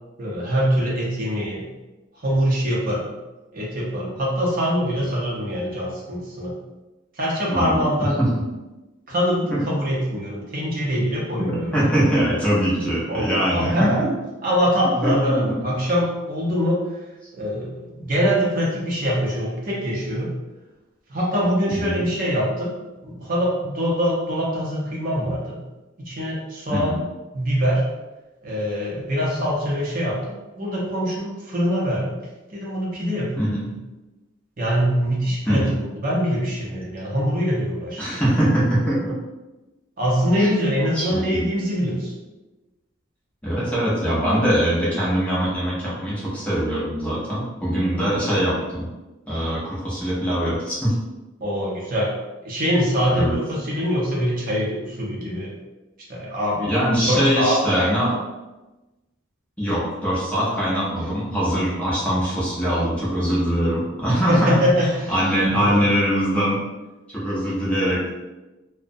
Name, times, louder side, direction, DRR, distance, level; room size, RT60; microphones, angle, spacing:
voice 1, 0.2-1.7 2.2-3.1 3.5-6.6 7.2-8.2 9.1-12.0 13.1-14.0 14.4-16.8 17.3-20.3 21.1-22.7 23.0-25.6 26.0-26.9 27.3-27.9 28.4-32.1 32.5-33.7 34.6-35.7 36.0-38.2 40.0-42.1 51.4-52.1 52.4-55.5 56.1-58.0 64.3-65.1 65.5-65.8, equal, 45° right, -5 dB, 0.6 m, -23 dB
voice 2, 11.5-14.1 15.0-15.1 21.8-22.0 26.7-27.0 33.4-33.6 35.5-35.7 38.0-39.2 40.4-40.6 40.9-41.4 43.4-48.9 49.3-50.9 53.2-53.4 56.6-58.1 59.6-64.5 65.1-66.6 67.1-68.1, equal, 5° left, -8 dB, 0.5 m, -22 dB
2.6 x 2.0 x 2.5 m, 1.1 s
head